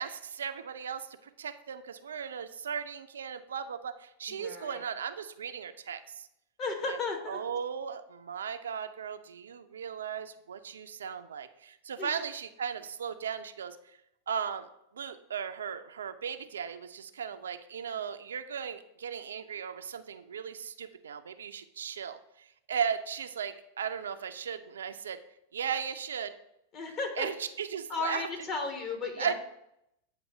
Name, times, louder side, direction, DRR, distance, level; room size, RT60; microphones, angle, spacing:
voice 1, 0.0-6.3 6.8-7.0 7.3-14.0 14.3-14.7 14.9-25.2 25.5-26.3 27.2-28.3 29.2-29.3, right 7 dB, 65° right, 9 dB, 0.4 m, -37 dB
voice 2, 4.3-4.8 6.6-7.4 12.0-12.2 26.7-27.3 27.9-29.3, left 3 dB, 35° left, 2 dB, 1.5 m, -34 dB
8.2 x 2.9 x 6.3 m, 0.81 s
figure-of-eight pair, 90°, 0 cm